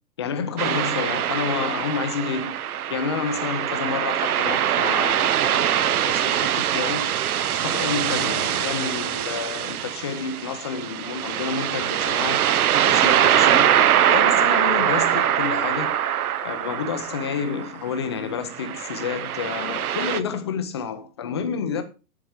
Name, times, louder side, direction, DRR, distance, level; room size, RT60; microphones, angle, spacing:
voice 1, 0.2-2.6 2.9-7.1 7.5-12.5 12.9-13.8 14.1-16.0 16.4-21.8, left 6 dB, 20° left, 0.5 m, -29 dB
sound 1, 0.6-17.9 18.5-20.2, right 10 dB, 80° right, 0.9 m, -23 dB
8.0 x 7.1 x 4.8 m
hypercardioid pair, 165°, 44 cm